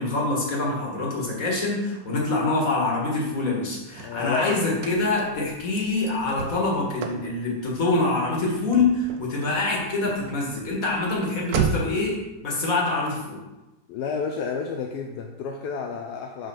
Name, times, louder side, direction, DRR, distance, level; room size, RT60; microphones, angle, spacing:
voice 1, 0.0-12.2 12.4-13.4, left 2 dB, 45° left, -2 dB, 2.1 m, -25 dB
Car / Slam, 3.4-12.1, right 6 dB, 75° right, 1.4 m, -35 dB
voice 2, 4.0-4.6 13.9-16.5, left 5 dB, 70° left, 2 dB, 1.0 m, -30 dB
5.5 x 5.5 x 5.7 m, 1.0 s
omnidirectional pair, 2.1 m